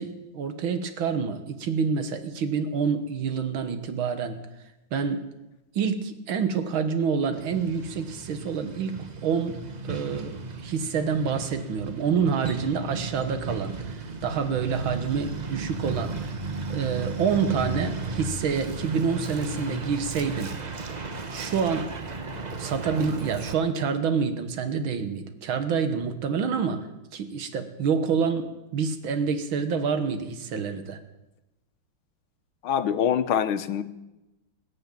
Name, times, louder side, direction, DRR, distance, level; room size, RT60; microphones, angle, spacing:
voice 1, 0.0-4.4 4.9-5.3 5.7-16.4 16.7-20.6 21.3-21.9 22.6-26.8 27.1-31.0, right 6 dB, 85° right, 9 dB, 2.1 m, -27 dB
Truck, 7.3-23.5, right 3 dB, 35° right, 0.7 m, -35 dB
voice 2, 32.6-33.8, left 8 dB, 90° left, 12 dB, 1.7 m, -24 dB
20.5 x 7.8 x 8.9 m, 0.98 s
omnidirectional pair, 2.2 m